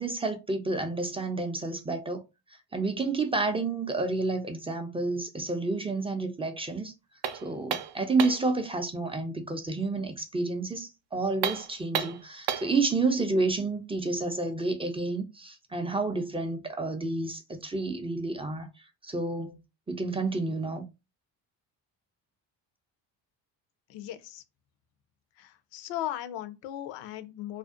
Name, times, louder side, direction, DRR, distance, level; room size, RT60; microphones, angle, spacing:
voice 1, 0.0-2.2 2.7-6.9 7.4-18.7 19.0-19.6 19.9-20.8, right 3 dB, 15° right, 0.3 m, -30 dB
sound 1, 7.2-8.5 11.3-12.8, right 9 dB, 65° right, 0.5 m, -32 dB
voice 2, 23.9-24.4 25.4-27.6, left 12 dB, 70° left, 0.5 m, -37 dB
2.5 x 2.1 x 2.4 m
supercardioid pair, 80°, 45 cm